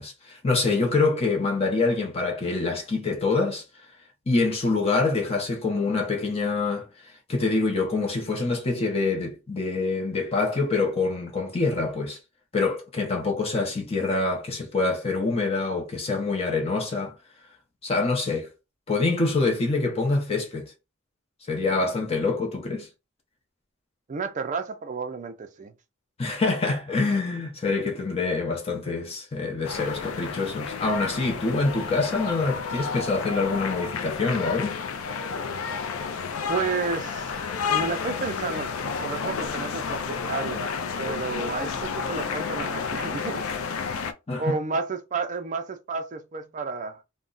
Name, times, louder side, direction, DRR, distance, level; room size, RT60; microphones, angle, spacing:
voice 1, 0.0-3.6 4.3-12.2 12.5-17.2 17.8-18.5 18.9-20.7 21.5-22.9 26.2-34.8 44.3-44.6, left 3 dB, 30° left, 0.6 m, -25 dB
voice 2, 24.1-25.7 36.5-37.3 37.7-43.5 44.4-47.0, right 4 dB, 35° right, 0.4 m, -31 dB
sound 1, 29.6-44.1, left 6 dB, 80° left, 0.4 m, -31 dB
2.2 x 2.1 x 3.7 m
head